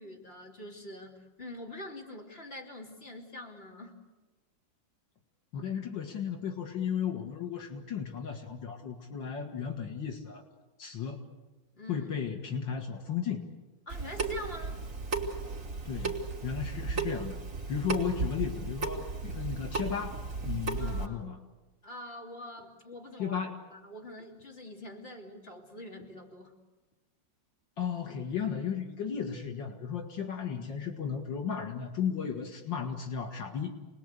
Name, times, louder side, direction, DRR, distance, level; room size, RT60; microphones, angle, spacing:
voice 1, 0.0-4.0 11.7-12.1 13.9-14.8 20.7-21.2 21.8-23.4 23.7-26.5, left 1 dB, 30° left, 0 dB, 3.4 m, -45 dB
voice 2, 5.5-10.4 10.8-11.2 11.9-13.4 15.9-16.2 16.4-17.4 17.7-21.4 23.2-23.6 27.8-33.7, left 7 dB, 75° left, 4 dB, 2.4 m, -35 dB
Water tap faucet / Sink (filling or washing) / Drip, 13.9-21.1, right 4 dB, 40° right, 3.3 m, -35 dB
28.5 x 20.5 x 8.3 m, 1.2 s
omnidirectional pair, 2.1 m